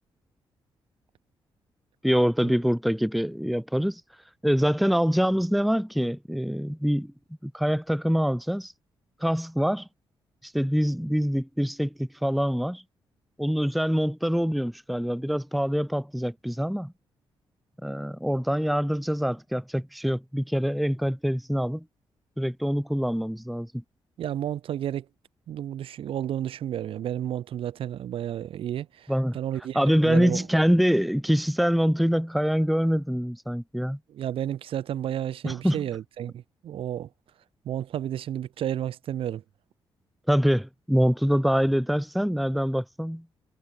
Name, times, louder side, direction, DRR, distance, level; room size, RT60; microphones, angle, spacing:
voice 1, 2.0-4.0 4.4-7.1 7.4-8.7 9.2-9.9 10.4-12.8 13.4-16.9 17.8-21.8 22.4-23.8 29.1-29.4 29.7-34.0 35.4-35.8 40.3-43.2, equal, ahead, 0.7 m, -25 dB
voice 2, 24.2-25.1 25.5-29.8 30.0-30.4 34.1-37.1 37.7-39.4, right 10 dB, 80° right, 2.0 m, -31 dB
cardioid pair, 105°, 9 cm